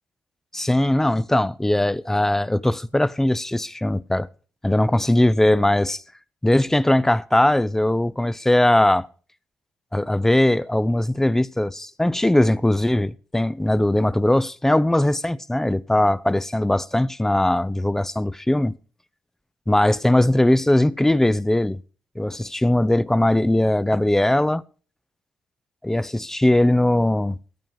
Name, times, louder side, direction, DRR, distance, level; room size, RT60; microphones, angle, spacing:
voice 1, 0.5-4.3 4.6-6.0 6.4-9.1 9.9-18.7 19.7-21.8 22.2-24.6 25.8-27.4, left 1 dB, 10° left, 0.5 m, -20 dB
14.5 x 9.3 x 4.7 m
cardioid pair, 70°, 4 cm